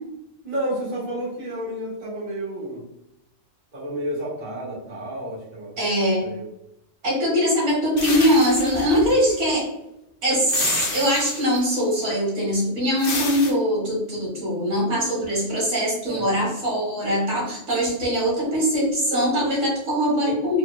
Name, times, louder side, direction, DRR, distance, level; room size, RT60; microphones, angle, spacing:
voice 1, 0.4-2.8 3.7-5.7 6.2-6.5 16.1-16.4, right 1 dB, 35° right, -8 dB, 1.7 m, -31 dB
voice 2, 5.8-6.3 7.0-9.7 10.2-10.4 10.9-20.6, equal, 75° right, -4 dB, 1.8 m, -22 dB
sound 1, 8.0-9.4 10.5-11.7 13.0-13.5, left 3 dB, 50° left, 0.9 m, -30 dB
4.5 x 3.8 x 2.2 m, 0.85 s
omnidirectional pair, 1.3 m